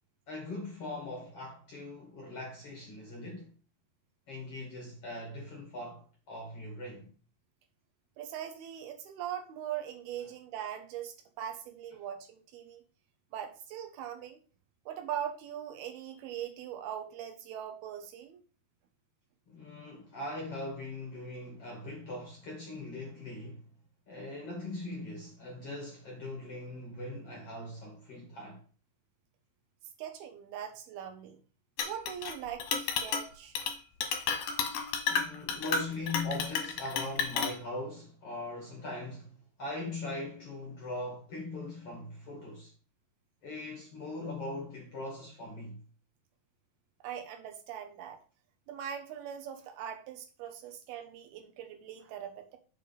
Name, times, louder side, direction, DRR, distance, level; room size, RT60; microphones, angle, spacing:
voice 1, 0.3-3.5 4.3-7.1 19.5-23.7 24.1-28.6 35.1-42.7 43.4-45.8, left 2 dB, 50° left, 2.0 m, -40 dB
voice 2, 8.2-12.8 13.3-14.4 14.9-18.4 30.0-31.4 31.8-33.6 47.0-48.2 48.7-52.6, right 9 dB, 75° right, 3.1 m, -41 dB
Chink clink, 31.8-32.3 32.6-33.3 33.6-33.7 34.0-37.6, left 6 dB, 65° left, 2.5 m, -32 dB
7.1 x 5.3 x 5.0 m
omnidirectional pair, 4.5 m